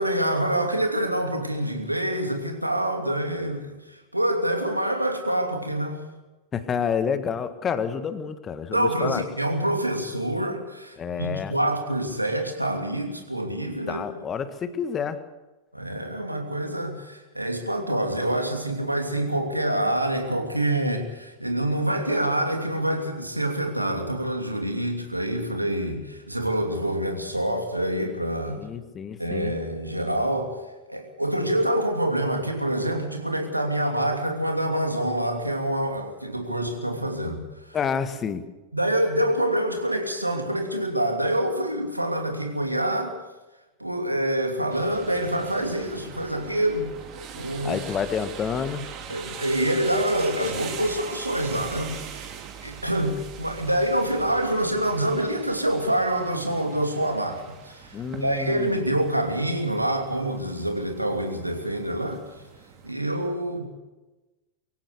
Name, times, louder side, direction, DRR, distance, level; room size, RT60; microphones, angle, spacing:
voice 1, 0.0-6.0 8.7-14.0 15.7-28.6 29.2-30.6 30.9-37.4 38.7-43.1 43.8-46.9 47.3-47.8 49.1-52.3 52.6-57.9 58.2-62.2 62.8-63.6, right 1 dB, 85° right, 4 dB, 2.9 m, -26 dB
voice 2, 6.5-9.2 11.0-11.6 13.9-15.2 28.5-29.5 37.7-38.5 47.6-48.9 57.9-58.8, left 7 dB, 25° left, 11 dB, 1.6 m, -29 dB
sound 1, 44.7-62.9, right 8 dB, 35° right, 2.9 m, -41 dB
24.0 x 16.5 x 6.8 m, 1.1 s
figure-of-eight pair, 90°, 0 cm